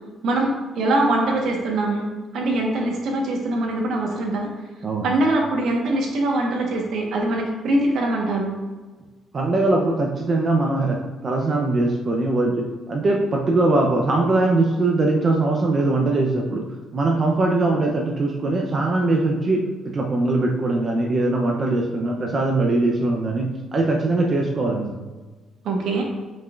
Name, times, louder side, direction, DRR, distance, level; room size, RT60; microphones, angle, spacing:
voice 1, 0.2-2.1 2.3-4.5 5.0-8.5 25.6-26.0, right 2 dB, 75° right, 0 dB, 1.3 m, -22 dB
voice 2, 9.3-16.6 16.9-19.6 19.9-25.0, right 2 dB, 45° right, 1 dB, 0.8 m, -21 dB
7.4 x 5.5 x 2.5 m, 1.3 s
cardioid pair, 90°, 0 cm